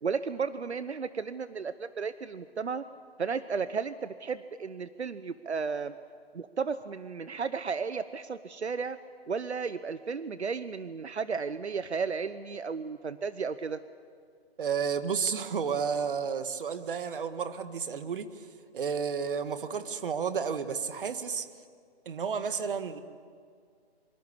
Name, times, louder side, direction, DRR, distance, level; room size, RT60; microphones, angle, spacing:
voice 1, 0.0-2.8 3.2-5.9 6.3-9.0 9.3-13.8, right 5 dB, 80° right, 13 dB, 1.1 m, -34 dB
voice 2, 14.6-18.3 18.7-21.5 22.1-23.0, right 6 dB, 55° right, 10 dB, 1.9 m, -31 dB
24.5 x 24.5 x 8.4 m, 2.1 s
figure-of-eight pair, 150°, 33 cm